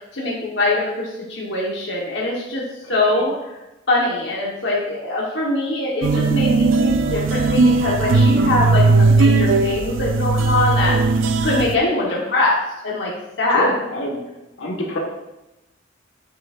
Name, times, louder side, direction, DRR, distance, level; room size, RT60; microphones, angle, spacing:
voice 1, 0.1-2.6 2.9-3.3 3.9-11.0 11.4-12.6 12.8-13.1 13.4-13.7, left 2 dB, 65° left, -4 dB, 1.2 m, -22 dB
voice 2, 2.8-3.2 12.0-12.2 13.5-14.3 14.6-15.0, equal, 85° left, -1 dB, 1.5 m, -26 dB
sound 1, 6.0-11.7, right 3 dB, 85° right, 0.4 m, -17 dB
8.1 x 6.3 x 2.5 m, 0.98 s
head